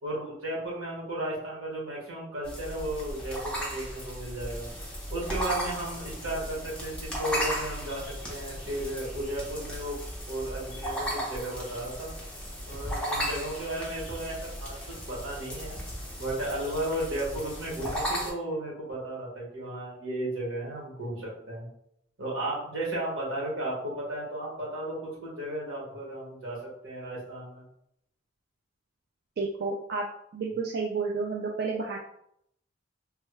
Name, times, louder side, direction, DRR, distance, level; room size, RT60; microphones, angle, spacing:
voice 1, 0.0-4.7 5.1-10.0 10.3-12.1 12.6-15.8 16.2-21.7 22.2-27.6, right 1 dB, 85° right, -5 dB, 1.5 m, -34 dB
sound 1, 2.4-18.3, equal, 5° left, 0.7 m, -36 dB
voice 2, 29.4-30.1 30.3-32.0, right 4 dB, 50° right, 0 dB, 0.3 m, -31 dB
3.3 x 2.2 x 3.1 m, 0.75 s
head